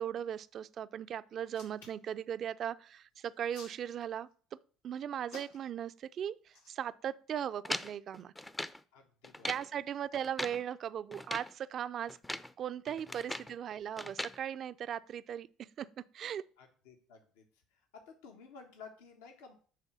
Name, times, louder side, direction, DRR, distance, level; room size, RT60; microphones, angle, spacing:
voice 1, 0.0-4.3 4.8-8.3 9.5-12.2 12.6-16.4, right 9 dB, 50° right, 0.4 m, -38 dB
Hands, 1.4-2.1 3.2-4.3 5.3-5.8 6.5-6.7, left 3 dB, 90° left, 3.2 m, -52 dB
sound 1, 7.6-8.8 9.2-9.7 10.1-10.6 11.1-11.5 12.1-12.5 12.9-13.5 14.0-14.4, left 1 dB, 10° left, 0.5 m, -40 dB
voice 2, 8.9-9.8 13.1-13.2 16.6-17.4 17.9-19.5, left 5 dB, 75° left, 1.2 m, -54 dB
9.1 x 3.3 x 6.0 m
hypercardioid pair, 65°, 0 cm